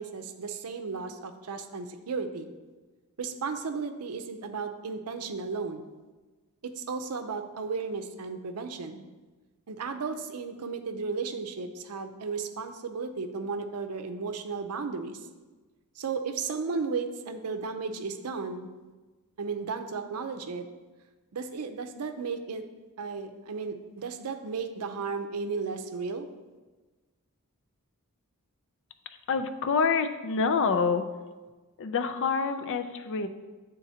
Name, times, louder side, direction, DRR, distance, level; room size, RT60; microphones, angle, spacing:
voice 1, 0.0-2.5 3.2-5.8 6.6-9.0 9.7-15.2 16.0-18.7 19.4-20.7 21.3-22.6 23.0-26.3, right 4 dB, 80° right, 7 dB, 0.6 m, -34 dB
voice 2, 29.3-31.0 31.8-33.3, left 5 dB, 60° left, 9 dB, 0.4 m, -27 dB
10.0 x 3.8 x 2.8 m, 1.3 s
head